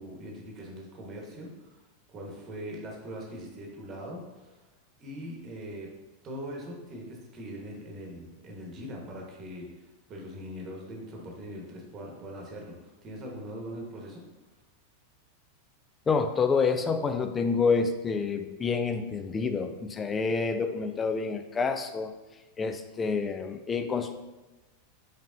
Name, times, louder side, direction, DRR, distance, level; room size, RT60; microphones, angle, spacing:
voice 1, 0.0-1.8 2.1-4.6 5.0-5.9 6.2-14.2, equal, 30° right, 0 dB, 1.1 m, -41 dB
voice 2, 16.1-22.1 22.6-24.1, left 5 dB, 20° left, 8 dB, 0.4 m, -28 dB
5.3 x 3.9 x 2.5 m, 1.1 s
figure-of-eight pair, 90°, 0 cm